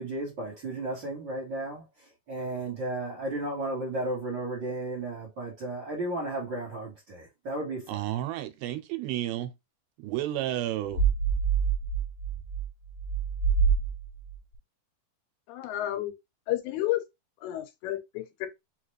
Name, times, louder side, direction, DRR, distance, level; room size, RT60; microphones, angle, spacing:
voice 1, 0.0-8.0, right 1 dB, 55° right, 1.3 m, -34 dB
voice 2, 7.9-9.5 10.0-11.1, right 13 dB, 90° right, 2.5 m, -31 dB
sound 1, 10.9-14.4, right 6 dB, 75° left, 2.0 m, -26 dB
voice 3, 15.5-16.1 16.5-17.0 17.4-18.5, left 14 dB, 90° left, 2.7 m, -31 dB
5.8 x 2.4 x 3.1 m
omnidirectional pair, 4.3 m